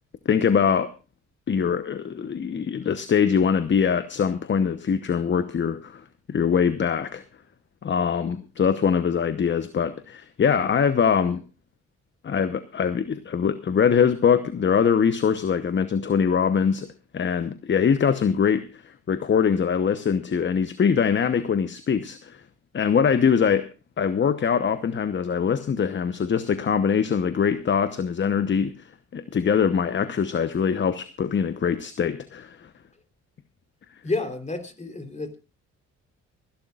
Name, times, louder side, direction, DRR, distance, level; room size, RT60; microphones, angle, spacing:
voice 1, 0.2-0.9 1.5-7.2 7.8-11.4 12.2-16.9 17.1-22.4 22.7-23.6 24.0-32.7, left 7 dB, 40° left, 1.0 m, -23 dB
voice 2, 34.0-35.4, left 3 dB, 25° left, 3.5 m, -30 dB
25.0 x 11.5 x 2.4 m
cardioid pair, 90°, 30 cm